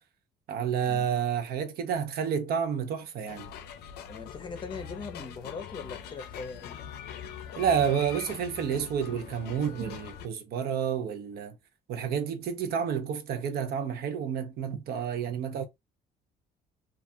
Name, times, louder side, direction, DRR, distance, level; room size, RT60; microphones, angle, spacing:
voice 1, 0.5-3.5 7.6-11.5 11.9-15.6, right 7 dB, 65° right, 0.6 m, -30 dB
sound 1, 3.3-10.3, left 8 dB, 75° left, 0.5 m, -43 dB
voice 2, 4.1-6.8, left 5 dB, 30° left, 0.6 m, -40 dB
2.3 x 2.3 x 2.6 m
cardioid pair, 110°, 17 cm